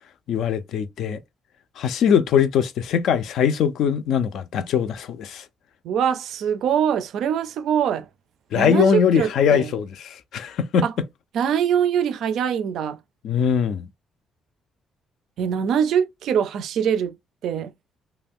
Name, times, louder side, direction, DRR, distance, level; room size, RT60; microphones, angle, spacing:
voice 1, 0.3-1.2 1.8-5.4 8.5-10.9 13.2-13.9, left 7 dB, 60° left, 0.4 m, -21 dB
voice 2, 5.8-8.1 8.5-9.7 10.8-10.9 11.3-13.0 15.4-17.2 17.4-17.7, right 8 dB, 65° right, 0.4 m, -23 dB
2.5 x 2.2 x 3.4 m
cardioid pair, 175°, 0 cm